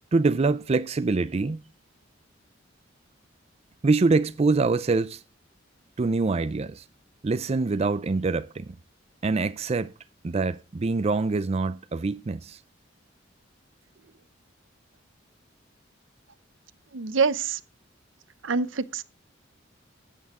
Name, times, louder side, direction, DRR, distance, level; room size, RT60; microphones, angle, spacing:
voice 1, 0.1-1.6 3.8-5.2 6.0-6.8 7.2-8.7 9.2-9.9 10.2-12.6, right 3 dB, 35° right, 0.4 m, -24 dB
voice 2, 16.9-17.6 18.4-19.0, right 5 dB, 80° right, 0.7 m, -25 dB
13.0 x 8.5 x 3.6 m
head